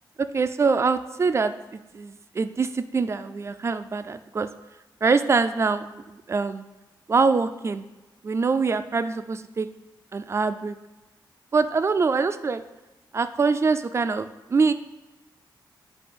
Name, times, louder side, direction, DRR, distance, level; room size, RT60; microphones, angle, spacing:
voice 1, 0.2-1.5 1.9-4.5 5.0-6.6 7.1-7.8 8.2-9.7 10.1-10.8 11.5-12.6 13.1-14.7, right 4 dB, 35° right, 11 dB, 0.3 m, -24 dB
6.9 x 2.8 x 5.2 m, 1.1 s
cardioid pair, 100°, 8 cm